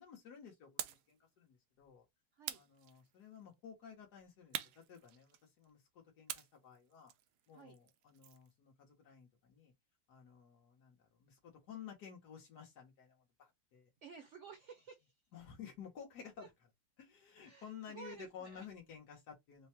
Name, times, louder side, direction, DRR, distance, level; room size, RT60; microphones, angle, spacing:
voice 1, 0.0-2.1 2.5-7.1 7.5-9.7 10.1-13.9 15.3-16.5 17.0-19.7, left 7 dB, 75° left, 1.8 m, -54 dB
sound 1, 0.8-1.1 2.4-3.4 4.5-5.6 6.3-8.5, right 11 dB, 80° right, 1.1 m, -46 dB
voice 2, 14.0-15.1 16.4-16.5 17.4-18.7, right 6 dB, 60° right, 0.9 m, -54 dB
4.4 x 2.2 x 3.0 m
omnidirectional pair, 1.7 m